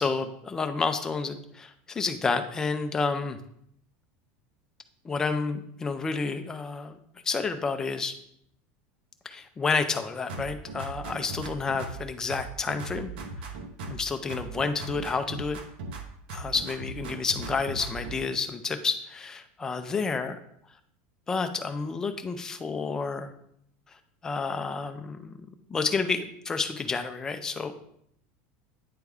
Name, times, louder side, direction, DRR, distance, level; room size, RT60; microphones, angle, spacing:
voice 1, 0.0-3.4 5.0-7.0 7.2-8.1 9.3-13.1 13.9-15.6 16.3-20.4 21.3-23.3 24.2-25.4 25.7-27.8, left 4 dB, 10° left, 7 dB, 0.4 m, -30 dB
sound 1, 10.3-12.0 12.3-14.0 14.3-16.0 16.3-18.2, right 3 dB, 80° right, 0.9 m, -38 dB
9.3 x 3.4 x 3.5 m, 0.72 s
supercardioid pair, 175°, 5 cm